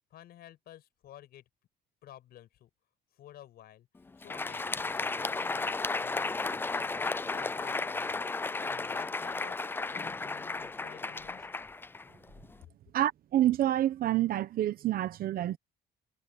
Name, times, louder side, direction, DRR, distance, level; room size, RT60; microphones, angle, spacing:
voice 1, 0.1-1.4 2.0-2.7 3.1-3.9 4.2-11.5, left 12 dB, 70° left, 6.3 m, -53 dB
Crowd, 4.1-12.6, left 3 dB, 10° left, 0.4 m, -34 dB
voice 2, 12.9-15.6, right 13 dB, 60° right, 0.9 m, -28 dB
cardioid pair, 110°, 17 cm